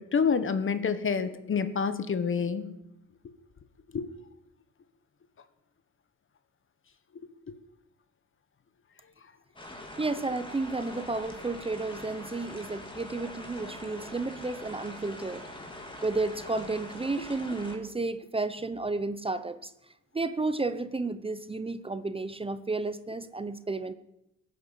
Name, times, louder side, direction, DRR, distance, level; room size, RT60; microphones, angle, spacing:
voice 1, 0.1-2.7 3.9-4.1 7.5-7.6 17.2-17.3, left 6 dB, 40° left, 12 dB, 1.4 m, -28 dB
sound 1, 9.6-17.8, left 1 dB, 15° left, 3.1 m, -43 dB
voice 2, 10.0-15.4 16.0-19.7 20.1-23.9, right 3 dB, 20° right, 12 dB, 0.8 m, -32 dB
17.0 x 9.4 x 8.3 m, 0.85 s
cardioid pair, 90°, 30 cm